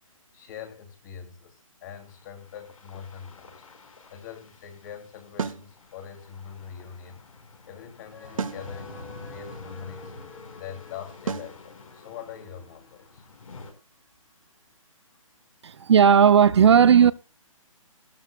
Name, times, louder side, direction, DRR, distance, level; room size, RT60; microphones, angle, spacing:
voice 1, 0.3-3.6 4.1-7.2 7.6-10.1 10.6-13.2, left 8 dB, 30° left, 2.6 m, -43 dB
sound 1, 1.9-13.7, left 3 dB, 70° left, 5.0 m, -48 dB
sound 2, 5.4-5.7 8.4-8.7 11.3-11.6, right 5 dB, 70° right, 1.0 m, -30 dB
sound 3, 8.1-13.8 14.3-14.4, left 2 dB, 10° left, 1.3 m, -49 dB
voice 2, 15.6-17.1, right 7 dB, 55° right, 0.5 m, -15 dB
17.5 x 13.0 x 2.3 m
hypercardioid pair, 160°, 18 cm